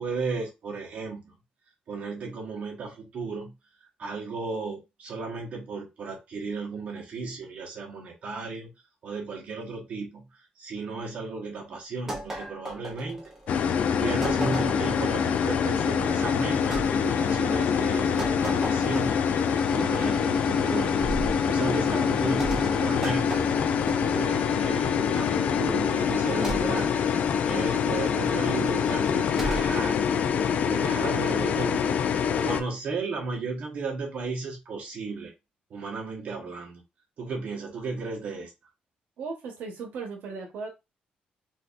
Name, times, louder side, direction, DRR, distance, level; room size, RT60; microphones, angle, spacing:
voice 1, 0.0-1.3 1.9-3.5 4.0-8.7 9.0-13.3 14.0-19.3 19.7-23.5 24.1-26.9 27.5-30.0 30.7-35.3 35.7-36.8 37.2-38.5, right 4 dB, 45° right, -1 dB, 1.1 m, -34 dB
sound 1, 12.1-13.5 14.2-15.0 16.7-16.9 18.2-19.3 21.0-21.4 22.4-24.5 26.4-26.9 29.4-29.8, right 1 dB, 15° right, 0.9 m, -35 dB
sound 2, 13.5-32.6, left 7 dB, 50° left, 0.3 m, -25 dB
voice 2, 39.2-40.7, right 4 dB, 80° right, 1 dB, 1.0 m, -36 dB
4.2 x 2.6 x 2.4 m, 0.24 s
cardioid pair, 180°, 3 cm